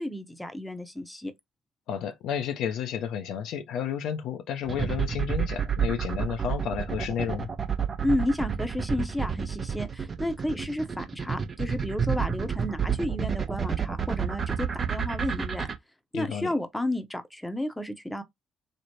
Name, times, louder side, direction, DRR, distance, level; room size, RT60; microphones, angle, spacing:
voice 1, 0.0-1.3 8.0-15.7 16.1-18.2, left 1 dB, 10° left, 0.6 m, -32 dB
voice 2, 1.9-7.5 16.1-16.5, left 8 dB, 65° left, 0.4 m, -31 dB
sound 1, 4.7-15.7, right 7 dB, 40° right, 0.7 m, -29 dB
3.1 x 2.0 x 2.7 m
hypercardioid pair, 45°, 0 cm